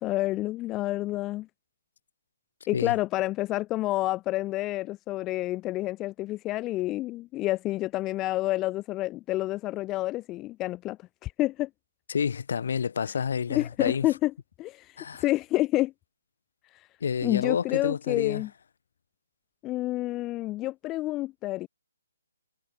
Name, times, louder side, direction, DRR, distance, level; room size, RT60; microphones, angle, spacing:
voice 1, 0.0-1.5 2.7-11.7 13.5-14.3 14.6-15.9 16.7-16.9 17.2-18.5 19.6-21.7, left 17 dB, 15° left, 0.3 m, -29 dB
voice 2, 12.1-14.1 15.0-15.2 17.0-18.4, left 7 dB, 60° left, 4.1 m, -29 dB
hypercardioid pair, 155°, 0 cm